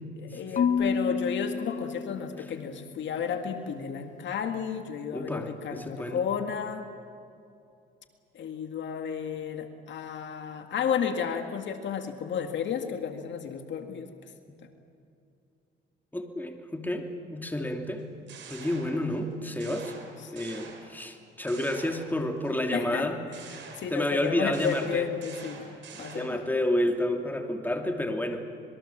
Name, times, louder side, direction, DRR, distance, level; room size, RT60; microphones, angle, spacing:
voice 1, 0.2-6.9 8.3-14.1 22.7-23.1 23.8-25.7 26.0-26.4, left 7 dB, 65° left, 6 dB, 2.0 m, -32 dB
Marimba xylophone / Wood, 0.6-2.8, left 6 dB, 40° left, 0.7 m, -29 dB
voice 2, 5.1-6.2 16.1-18.1 18.5-19.9 20.3-23.2 23.9-25.1 25.9-28.4, left 1 dB, 10° left, 3 dB, 2.9 m, -30 dB
sound 1, 18.0-19.3 19.6-21.1 21.5-22.5 23.3-26.5, right 5 dB, 70° right, 5.1 m, -47 dB
26.5 x 21.5 x 7.4 m, 2.6 s
cardioid pair, 90°, 20 cm